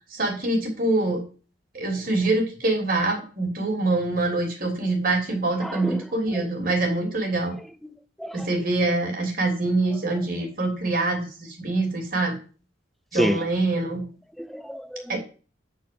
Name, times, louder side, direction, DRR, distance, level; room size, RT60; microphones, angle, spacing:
voice 1, 0.1-1.2 1.7-7.5 8.3-12.4 13.1-14.0 15.1-15.2, right 2 dB, 50° right, 3.2 m, -25 dB
voice 2, 5.6-6.1 6.3-6.4 7.8-8.5 13.1-13.4 14.4-15.2, equal, ahead, 0.7 m, -29 dB
9.6 x 4.7 x 7.6 m
head